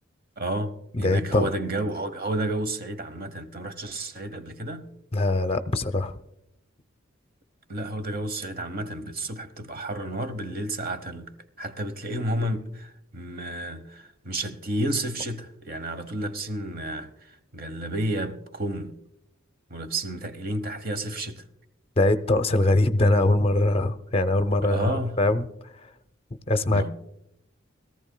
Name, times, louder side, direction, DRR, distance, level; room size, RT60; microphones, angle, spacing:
voice 1, 0.4-4.9 7.7-11.3 11.6-18.9 19.7-21.4 24.6-25.2 26.7-26.9, right 1 dB, 50° right, 1.0 m, -31 dB
voice 2, 0.9-1.5 5.1-6.1 22.0-25.5 26.5-26.9, left 2 dB, 30° left, 0.6 m, -22 dB
21.5 x 14.0 x 2.2 m
head